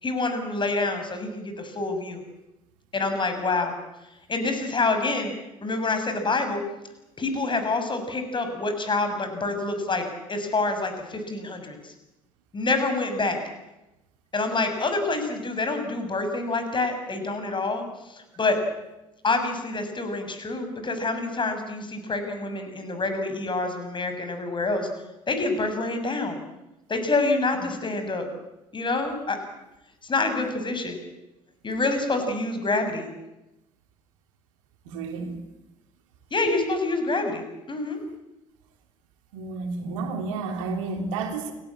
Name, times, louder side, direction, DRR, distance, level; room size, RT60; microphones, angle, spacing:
voice 1, 0.0-2.2 2.9-3.7 4.3-5.3 5.6-6.6 7.2-11.8 12.5-13.4 14.3-18.6 19.2-24.9 25.3-26.4 26.9-28.2 28.7-29.4 30.1-31.0 31.6-33.1 36.3-38.0, left 3 dB, 30° left, 7 dB, 6.7 m, -27 dB
voice 2, 34.8-35.4 39.3-41.5, right 4 dB, 70° right, 4 dB, 3.4 m, -31 dB
29.5 x 18.5 x 8.8 m, 0.97 s
figure-of-eight pair, 55°, 17 cm